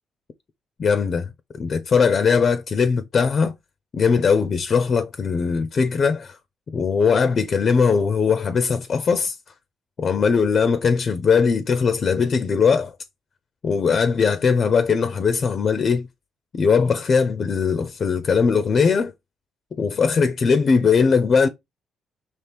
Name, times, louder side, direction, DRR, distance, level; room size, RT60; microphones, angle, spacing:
voice 1, 0.8-1.3 1.6-3.5 3.9-6.4 6.7-9.4 10.0-12.9 13.6-16.1 16.5-19.1 19.8-21.5, left 5 dB, 50° left, 0.5 m, -20 dB
4.4 x 3.0 x 3.3 m
cardioid pair, 90°, 0 cm